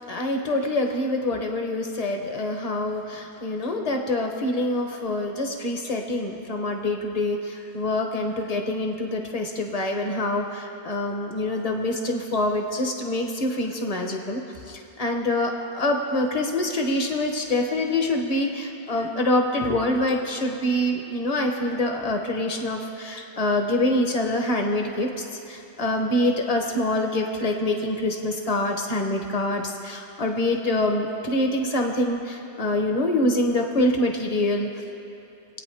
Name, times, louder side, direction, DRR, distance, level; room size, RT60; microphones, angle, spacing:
voice 1, 0.0-14.4 14.7-34.7, left 1 dB, 40° left, 2 dB, 1.2 m, -25 dB
23.0 x 9.1 x 3.5 m, 3.0 s
omnidirectional pair, 1.1 m